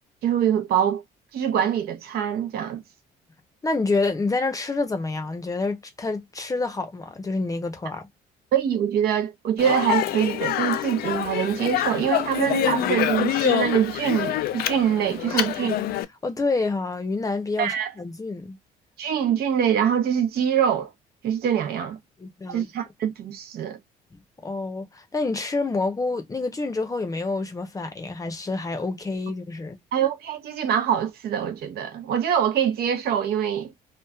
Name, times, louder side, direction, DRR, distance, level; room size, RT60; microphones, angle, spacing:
voice 1, 0.2-1.0 1.3-2.8 8.5-15.8 17.6-17.9 19.0-20.9 21.2-22.0 22.5-23.8 29.9-33.7, right 9 dB, 70° right, 0.8 m, -24 dB
voice 2, 3.6-8.1 15.3-15.5 16.2-18.6 22.2-22.7 24.4-29.8, left 3 dB, 20° left, 0.7 m, -28 dB
Speech, 9.6-16.0, left 12 dB, 65° left, 0.4 m, -26 dB
3.0 x 2.4 x 2.3 m
cardioid pair, 110°, 17 cm